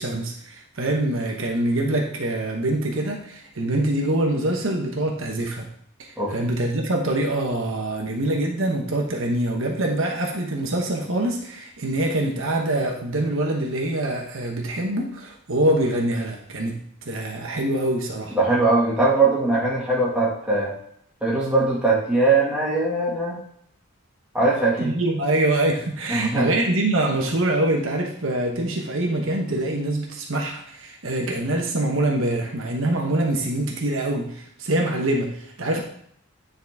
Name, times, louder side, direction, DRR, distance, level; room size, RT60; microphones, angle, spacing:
voice 1, 0.0-5.7 6.3-16.8 17.0-18.4 24.8-35.8, right 1 dB, 65° right, 1 dB, 1.1 m, -24 dB
voice 2, 18.4-20.7 21.2-23.4 24.3-25.0 26.1-26.5, right 3 dB, 5° right, -6 dB, 1.8 m, -21 dB
9.5 x 4.2 x 3.5 m, 0.65 s
head